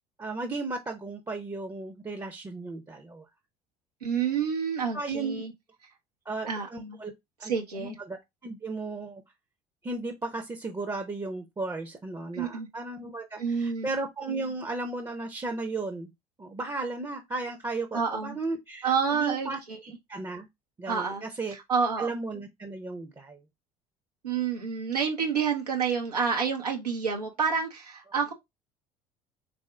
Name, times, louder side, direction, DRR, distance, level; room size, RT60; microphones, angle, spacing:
voice 1, 0.2-3.3 4.9-5.4 6.3-7.1 7.4-7.5 7.8-8.2 8.4-9.2 9.8-16.1 16.4-19.6 20.1-20.5 20.8-21.5 22.0-23.4, right 3 dB, 20° right, 0.7 m, -35 dB
voice 2, 4.0-5.5 6.5-7.0 7.4-8.0 12.3-12.7 13.4-13.9 17.9-18.4 18.8-19.8 20.9-21.2 21.5-22.1 24.2-28.3, right 6 dB, 85° right, 0.7 m, -29 dB
3.5 x 2.6 x 3.2 m
figure-of-eight pair, 60°, 20 cm